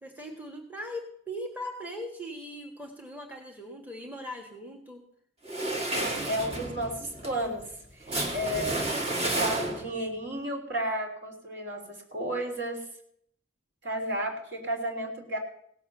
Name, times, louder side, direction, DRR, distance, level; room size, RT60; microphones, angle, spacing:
voice 1, 0.0-5.0, equal, 10° right, 2 dB, 1.6 m, -40 dB
sound 1, 5.5-10.1, right 2 dB, 30° right, 1.9 m, -31 dB
voice 2, 5.9-7.6 8.0-8.7 9.1-12.8 13.8-15.4, right 1 dB, 60° right, 1 dB, 3.4 m, -33 dB
17.0 x 7.2 x 6.7 m, 0.67 s
head